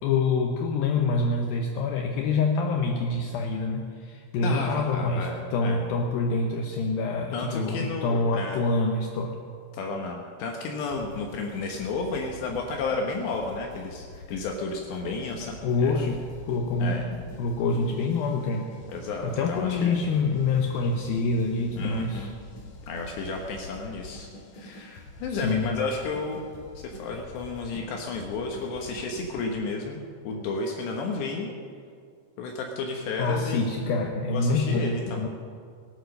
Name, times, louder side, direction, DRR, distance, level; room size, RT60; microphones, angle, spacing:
voice 1, 0.0-9.4 15.6-18.7 19.2-22.3 25.3-25.8 33.2-35.3, left 3 dB, 90° left, 2 dB, 2.0 m, -26 dB
voice 2, 4.4-5.8 7.3-8.6 9.7-15.5 15.8-16.0 16.8-17.0 18.9-20.0 21.8-22.4 22.9-24.3 24.5-26.5 26.8-31.5 32.4-33.9 34.3-35.2, left 3 dB, 70° left, 1 dB, 3.1 m, -32 dB
sound 1, 10.9-29.6, left 2 dB, 50° left, 3.2 m, -46 dB
18.5 x 11.0 x 6.5 m, 2.2 s
omnidirectional pair, 5.5 m